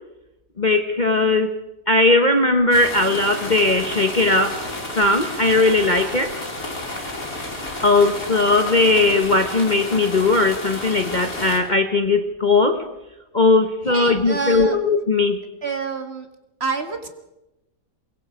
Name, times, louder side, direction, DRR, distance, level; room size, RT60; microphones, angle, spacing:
voice 1, 0.6-1.5 1.9-4.6 5.0-6.4 7.8-12.8 13.3-15.4, left 2 dB, 30° left, 6 dB, 1.1 m, -18 dB
sound 1, 2.7-11.6, left 1 dB, 55° left, 4.9 m, -31 dB
voice 2, 13.8-14.8 15.6-16.3 16.6-17.1, right 4 dB, 40° right, 7 dB, 1.7 m, -27 dB
23.5 x 22.0 x 5.0 m, 0.94 s
omnidirectional pair, 1.8 m